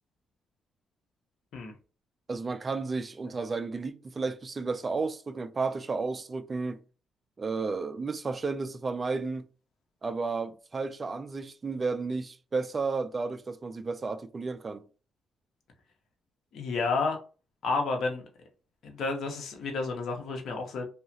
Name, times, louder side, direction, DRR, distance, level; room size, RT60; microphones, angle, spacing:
voice 1, 2.3-6.8 7.4-9.4 10.0-14.8, right 4 dB, 30° right, 0.4 m, -32 dB
voice 2, 16.5-17.2 17.6-18.2 18.8-20.9, left 3 dB, 65° left, 0.8 m, -30 dB
2.9 x 2.3 x 2.7 m
cardioid pair, 90°, 0 cm